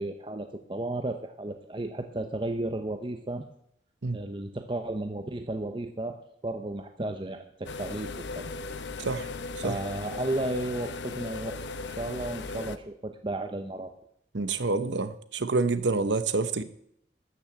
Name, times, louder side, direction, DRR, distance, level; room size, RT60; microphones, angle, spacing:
voice 1, 0.0-3.4 4.1-6.2 6.4-8.5 9.6-11.6 11.9-13.9, right 1 dB, 30° right, 0.7 m, -33 dB
sound 1, 7.7-12.8, left 3 dB, 90° left, 0.7 m, -37 dB
voice 2, 14.3-16.6, right 3 dB, 90° right, 0.9 m, -27 dB
13.0 x 6.2 x 8.0 m
head